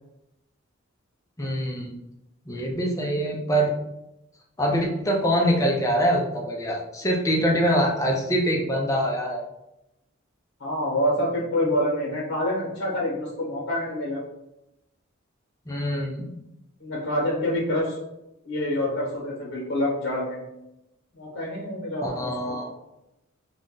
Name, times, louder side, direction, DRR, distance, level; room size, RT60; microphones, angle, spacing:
voice 1, 1.4-1.9 2.5-3.7 4.6-9.4 15.7-16.3 22.0-22.7, equal, 15° left, 0 dB, 0.5 m, -24 dB
voice 2, 10.6-14.2 16.8-18.0 18.4-20.4 21.1-22.3, left 1 dB, 60° left, -3 dB, 1.0 m, -26 dB
2.5 x 2.1 x 3.7 m, 0.88 s
head